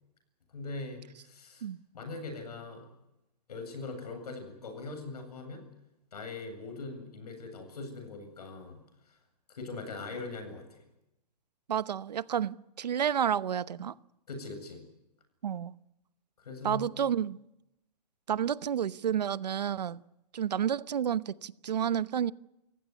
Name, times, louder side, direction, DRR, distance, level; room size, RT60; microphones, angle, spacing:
voice 1, 0.5-1.6 1.9-2.9 3.5-5.7 6.1-8.8 9.5-10.8 14.3-14.8 16.4-16.9, left 3 dB, 70° left, 7 dB, 7.9 m, -41 dB
voice 2, 11.7-14.0 15.4-15.8 16.6-17.4 18.3-20.0 20.3-22.3, right 9 dB, 75° right, 16 dB, 1.0 m, -30 dB
29.0 x 16.0 x 9.6 m, 0.90 s
hypercardioid pair, 170°, 21 cm